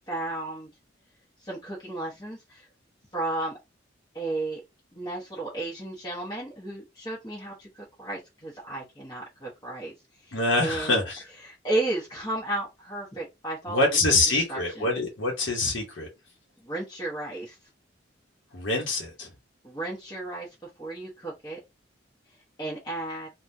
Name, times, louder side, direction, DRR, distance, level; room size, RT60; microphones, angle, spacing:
voice 1, 0.1-0.7 1.4-2.7 3.1-3.5 4.1-4.6 4.9-9.9 10.2-11.0 11.4-14.1 14.5-14.9 16.6-17.6 19.6-20.5 20.8-21.6 22.6-23.3, right 2 dB, 20° left, 1.0 m, -33 dB
voice 2, 10.3-11.2 13.7-16.1 18.5-19.3, left 2 dB, 85° left, 1.0 m, -25 dB
3.5 x 2.3 x 2.7 m
head